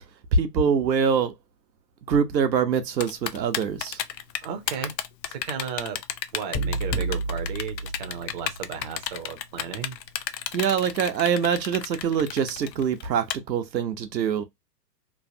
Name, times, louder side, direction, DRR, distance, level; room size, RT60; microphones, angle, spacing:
voice 1, 0.3-1.3 2.1-4.0 10.5-14.4, right 6 dB, 90° right, 0.8 m, -24 dB
Typing, 3.0-13.3, left 10 dB, 80° left, 0.6 m, -32 dB
voice 2, 4.4-4.9 5.3-6.0 6.3-10.0, right 7 dB, 30° right, 0.4 m, -34 dB
sound 1, 6.5-8.8, right 2 dB, 25° left, 0.5 m, -30 dB
3.2 x 2.0 x 2.6 m
hypercardioid pair, 130°, 50 cm